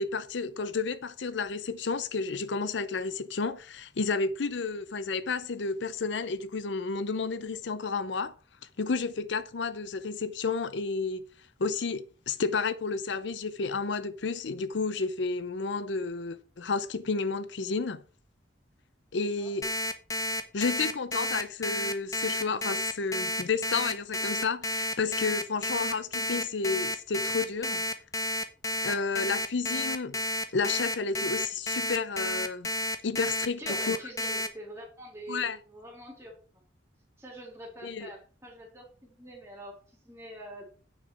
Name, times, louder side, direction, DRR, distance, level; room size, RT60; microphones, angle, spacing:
voice 1, 0.0-8.3 8.8-11.2 11.6-18.0 19.1-19.7 20.5-27.8 28.8-30.2 30.5-32.7 33.0-34.0 35.3-35.6 37.8-38.1, left 4 dB, 75° left, 0.6 m, -31 dB
Alarm, 19.6-34.5, left 1 dB, 20° left, 0.8 m, -31 dB
voice 2, 33.4-36.6 37.2-39.8 40.0-40.6, right 1 dB, 15° right, 3.5 m, -45 dB
8.8 x 6.1 x 4.7 m
head